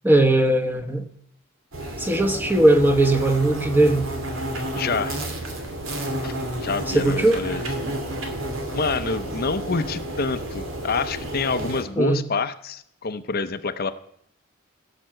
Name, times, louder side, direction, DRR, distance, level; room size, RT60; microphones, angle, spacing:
voice 1, 0.0-1.0 2.0-4.1 6.9-7.4 12.0-12.2, right 1 dB, 10° right, 7 dB, 1.0 m, -19 dB
sound 1, 1.7-11.8, right 1 dB, 85° right, 2.7 m, -31 dB
voice 2, 4.7-5.2 6.2-7.6 8.7-13.9, left 4 dB, 50° left, 10 dB, 0.6 m, -27 dB
17.0 x 5.9 x 7.7 m, 0.70 s
head